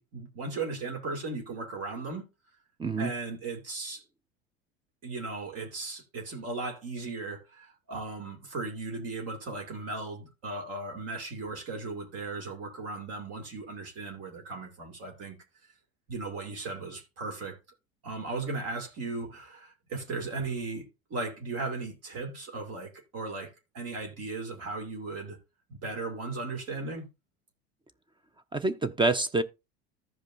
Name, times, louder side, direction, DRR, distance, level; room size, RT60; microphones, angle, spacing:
voice 1, 0.0-2.3 3.0-4.0 5.0-15.4 16.1-17.6 18.0-25.4 25.7-27.1, right 3 dB, 55° right, 2.4 m, -37 dB
voice 2, 2.8-3.1 28.5-29.4, right 3 dB, 15° right, 0.6 m, -26 dB
15.0 x 5.2 x 2.5 m
hypercardioid pair, 80°, 30 cm